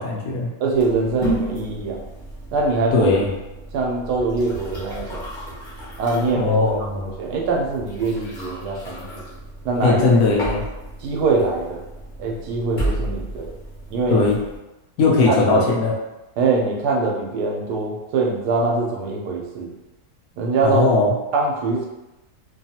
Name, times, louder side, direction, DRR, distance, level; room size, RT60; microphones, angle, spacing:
voice 1, 0.0-0.5 2.9-3.3 6.3-7.1 9.8-10.6 14.1-14.4 15.0-15.9 20.6-21.1, left 3 dB, 70° left, -3 dB, 1.0 m, -18 dB
voice 2, 0.6-2.0 2.5-3.1 3.7-5.2 6.0-6.6 6.9-9.3 9.6-10.1 11.0-11.8 12.2-13.5 13.9-14.3 15.0-15.6 16.4-19.7 20.4-20.8 21.3-21.9, right 3 dB, 90° right, -1 dB, 1.2 m, -23 dB
sound 1, 0.7-14.6, right 1 dB, 40° left, 0.8 m, -33 dB
3.0 x 2.3 x 2.7 m, 1.0 s
omnidirectional pair, 1.7 m